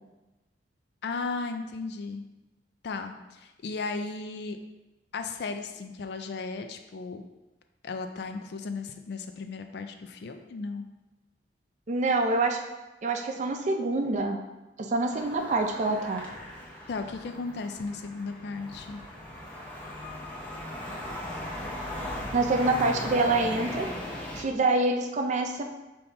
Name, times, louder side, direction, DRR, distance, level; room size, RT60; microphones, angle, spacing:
voice 1, 1.0-2.2 2.8-4.6 5.1-7.2 7.8-10.8 16.9-19.0, left 4 dB, 65° left, 6 dB, 0.4 m, -35 dB
voice 2, 11.9-12.6 13.0-14.4 14.8-16.2 22.3-23.9 24.4-25.6, right 2 dB, 40° right, 4 dB, 0.4 m, -26 dB
sound 1, 15.1-24.4, left 1 dB, 10° left, 0.6 m, -38 dB
5.5 x 2.7 x 3.3 m, 1.0 s
head